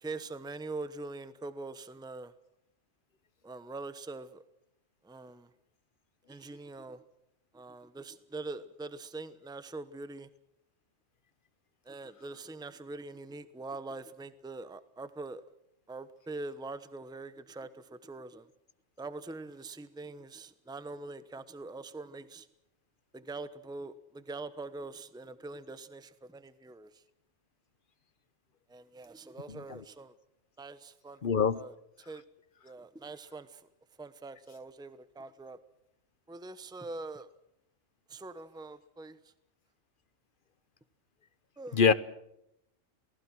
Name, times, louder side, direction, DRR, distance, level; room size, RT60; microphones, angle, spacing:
voice 1, 0.0-2.3 3.4-4.4 5.0-5.5 6.3-7.0 7.5-10.3 11.9-15.4 15.9-18.5 19.0-22.5 23.1-26.9 28.7-30.1 30.6-31.2 31.5-32.2 32.6-33.6 34.0-35.6 36.3-37.3 38.1-39.2 41.6-41.8, right 3 dB, 5° right, 13 dB, 0.9 m, -43 dB
voice 2, 29.5-29.8 31.2-31.6 41.7-41.9, left 6 dB, 50° left, 15 dB, 1.1 m, -25 dB
28.0 x 19.0 x 6.2 m, 0.80 s
omnidirectional pair, 1.2 m